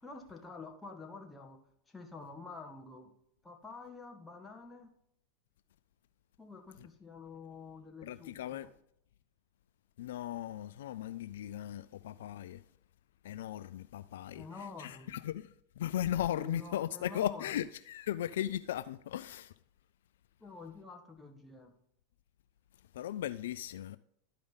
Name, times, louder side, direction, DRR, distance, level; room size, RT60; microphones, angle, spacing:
voice 1, 0.0-1.6 1.9-3.1 3.4-4.9 6.4-8.7 14.3-15.2 16.3-17.6 20.4-21.7, left 4 dB, 10° left, 1.7 m, -48 dB
voice 2, 8.0-8.7 10.0-12.6 13.2-14.4 14.8-15.5 15.8-19.5 22.9-24.0, left 12 dB, 75° left, 0.3 m, -37 dB
12.5 x 5.1 x 4.0 m
hypercardioid pair, 100°, 0 cm